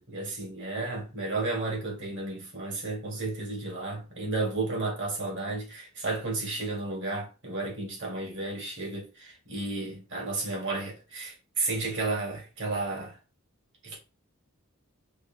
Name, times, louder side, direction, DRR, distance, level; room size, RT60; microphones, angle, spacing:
voice 1, 0.0-13.2 13.8-14.0, right 3 dB, 55° right, 1.6 m, -33 dB
4.9 x 2.5 x 2.6 m
head